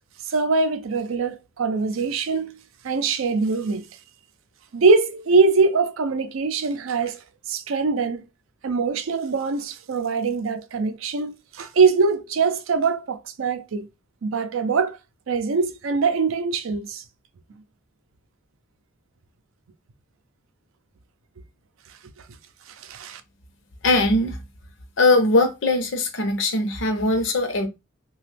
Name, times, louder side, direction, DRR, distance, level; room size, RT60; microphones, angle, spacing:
voice 1, 0.3-2.5 2.8-3.9 4.7-7.2 7.5-8.2 8.6-13.9 14.2-15.0 15.3-17.0 22.9-23.2, right 4 dB, 85° right, 0.5 m, -22 dB
voice 2, 23.8-24.4 25.0-27.7, left 2 dB, 65° left, 0.7 m, -20 dB
2.9 x 2.3 x 3.3 m
head